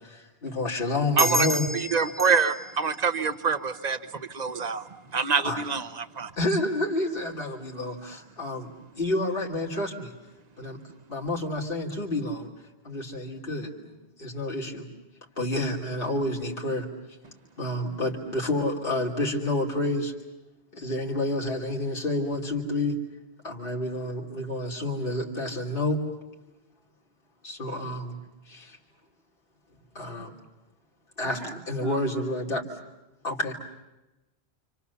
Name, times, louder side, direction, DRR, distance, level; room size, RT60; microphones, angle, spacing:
voice 1, 0.0-1.7 5.4-5.6 6.4-10.1 10.6-10.8 11.1-12.5 12.8-14.8 15.4-16.9 17.6-20.1 20.7-23.0 23.4-26.0 27.4-28.2 28.5-28.8 30.0-30.3 31.2-32.6 33.2-33.5, left 1 dB, 55° left, -2 dB, 3.3 m, -29 dB
sound 1, 1.2-4.3, equal, ahead, 1.3 m, -32 dB
voice 2, 1.2-1.5 1.7-6.3, right 5 dB, 40° right, 11 dB, 1.2 m, -26 dB
voice 3, 31.2-32.3, right 2 dB, 70° right, 5 dB, 2.5 m, -40 dB
29.0 x 27.5 x 7.0 m, 1.0 s
omnidirectional pair, 1.1 m